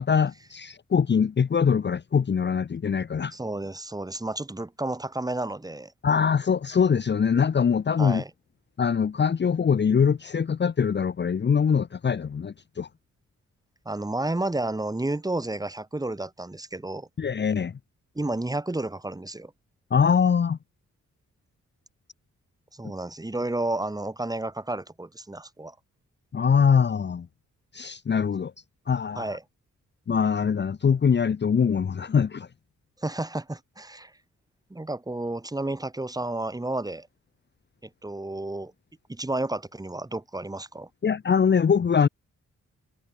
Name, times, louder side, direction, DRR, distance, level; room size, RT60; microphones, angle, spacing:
voice 1, 0.0-3.3 6.0-8.2 8.8-12.9 17.2-17.8 19.9-20.6 26.3-27.3 27.7-28.5 28.9-29.4 30.1-32.5 41.0-42.1, left 6 dB, 35° left, 1.0 m, -23 dB
voice 2, 3.3-5.9 8.0-8.3 13.9-17.1 18.1-19.5 22.7-25.7 29.2-29.4 33.0-34.1 34.7-37.1 37.8-38.7 39.1-40.9, right 2 dB, 10° right, 4.2 m, -31 dB
wide cardioid pair, 165°, 30 cm